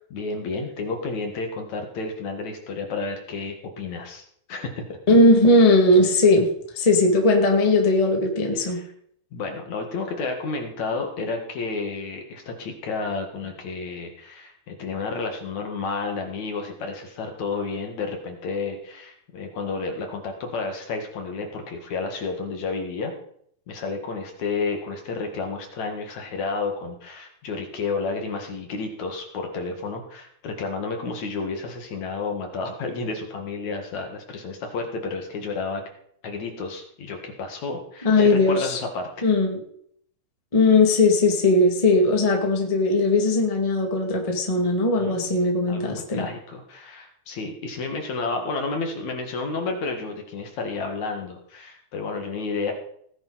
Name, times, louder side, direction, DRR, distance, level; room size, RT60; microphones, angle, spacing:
voice 1, 0.1-4.8 8.6-8.9 9.3-23.1 23.7-35.8 36.2-39.3 45.0-45.3 45.7-52.7, left 4 dB, 55° left, 3 dB, 2.9 m, -31 dB
voice 2, 5.1-6.5 6.7-8.8 38.0-38.8 39.2-39.6 40.5-46.2, left 2 dB, 15° left, 1 dB, 1.6 m, -18 dB
18.5 x 10.5 x 4.1 m, 0.67 s
omnidirectional pair, 4.4 m